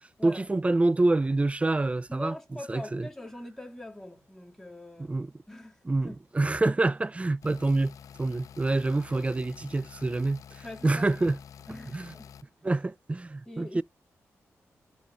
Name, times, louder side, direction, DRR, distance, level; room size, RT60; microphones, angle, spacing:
voice 1, 0.2-2.3 2.7-3.1 5.0-5.3 5.8-7.9 8.2-11.4 11.9-12.1 12.6-13.8, right 2 dB, 20° right, 0.4 m, -27 dB
voice 2, 2.1-5.1 5.5-6.2 10.6-11.1 11.7-12.3 13.5-13.8, left 1 dB, 5° left, 2.3 m, -43 dB
sound 1, 7.4-12.4, left 8 dB, 80° left, 0.4 m, -49 dB
13.5 x 5.1 x 2.4 m
cardioid pair, 55°, 6 cm